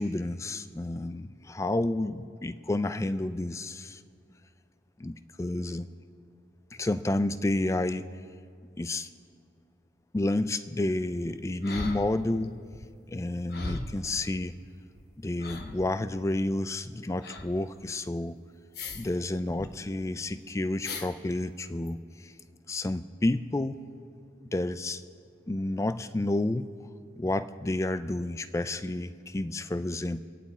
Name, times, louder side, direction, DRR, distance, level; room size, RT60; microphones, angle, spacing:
voice 1, 0.0-4.0 5.0-5.9 6.8-8.1 8.8-9.1 10.1-12.6 13.1-14.5 15.2-18.4 18.9-22.3 22.7-23.8 24.5-25.0 25.5-26.7 27.2-30.2, left 2 dB, 15° left, 0.3 m, -30 dB
sound 1, 11.6-12.4 12.7-12.9 13.5-14.1 15.0-15.1 15.4-16.0 17.2-17.5 18.7-19.1 19.4-19.7 20.8-21.1 21.9-22.0, left 2 dB, 55° left, 1.1 m, -37 dB
25.5 x 9.2 x 4.2 m
head